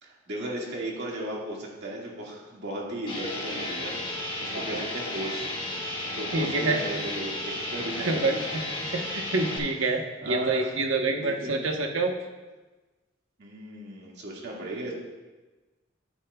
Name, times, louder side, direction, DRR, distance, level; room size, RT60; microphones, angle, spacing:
voice 1, 0.0-8.4 8.8-9.0 9.8-10.8 11.1-11.7 13.4-14.9, right 1 dB, 60° right, -3 dB, 2.0 m, -36 dB
sound 1, 3.1-9.6, left 1 dB, 25° left, 1.6 m, -33 dB
voice 2, 6.3-6.8 8.1-8.6 8.9-12.1, right 3 dB, 90° right, 2 dB, 1.1 m, -27 dB
10.0 x 9.3 x 2.3 m, 1.2 s
head